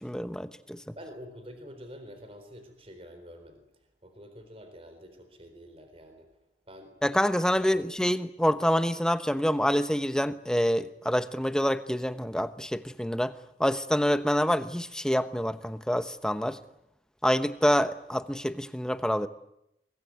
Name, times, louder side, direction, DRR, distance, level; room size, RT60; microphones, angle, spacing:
voice 1, 0.0-0.9 7.0-13.3 13.6-16.6 17.2-19.3, equal, 5° left, 11 dB, 1.0 m, -27 dB
voice 2, 1.0-3.6 4.0-6.3 6.7-6.9 7.5-7.9, equal, 30° right, 7 dB, 4.0 m, -47 dB
23.5 x 22.0 x 9.5 m, 0.81 s
head